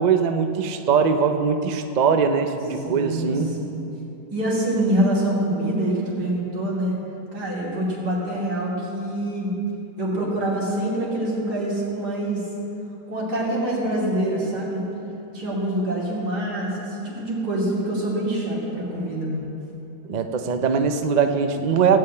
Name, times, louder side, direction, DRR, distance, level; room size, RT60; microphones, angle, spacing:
voice 1, 0.0-3.5 20.1-22.0, right 6 dB, 55° right, 7 dB, 0.4 m, -21 dB
voice 2, 2.8-3.8 4.3-6.9 7.3-9.5 10.0-12.4 13.1-14.8 15.3-19.4, right 1 dB, 80° right, -5 dB, 3.3 m, -25 dB
16.0 x 5.7 x 8.8 m, 2.9 s
omnidirectional pair, 1.7 m